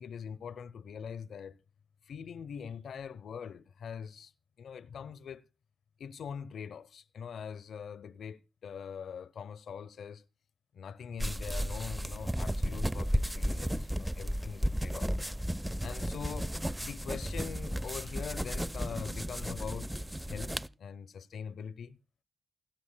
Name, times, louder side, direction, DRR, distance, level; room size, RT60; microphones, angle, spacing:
voice 1, 0.0-1.6 2.0-4.3 4.6-5.4 6.0-10.2 10.7-15.1 15.8-16.5 16.8-19.9 20.3-22.0, left 7 dB, 85° left, 0.7 m, -43 dB
sound 1, 11.2-20.7, equal, 10° right, 0.7 m, -34 dB
28.5 x 9.5 x 2.2 m
cardioid pair, 55°, 0 cm